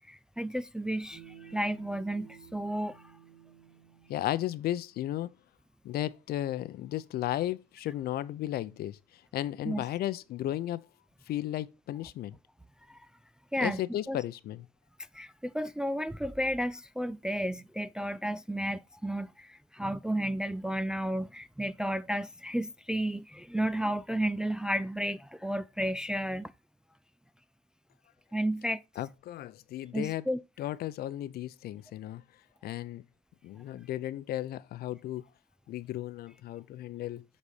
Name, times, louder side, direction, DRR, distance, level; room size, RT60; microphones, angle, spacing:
voice 1, 0.1-3.0 9.6-9.8 12.9-13.0 13.5-14.2 15.1-26.5 28.3-28.8 29.9-30.4, right 1 dB, 5° right, 0.3 m, -32 dB
sound 1, 1.1-4.9, right 9 dB, 60° right, 4.7 m, -54 dB
voice 2, 4.1-5.3 5.8-9.0 9.3-10.8 11.3-12.4 13.6-14.7 29.0-30.2 30.6-32.2 32.6-33.0 33.4-35.2 35.7-37.2, left 13 dB, 65° left, 0.6 m, -34 dB
8.3 x 4.2 x 4.9 m
cardioid pair, 110°, 17 cm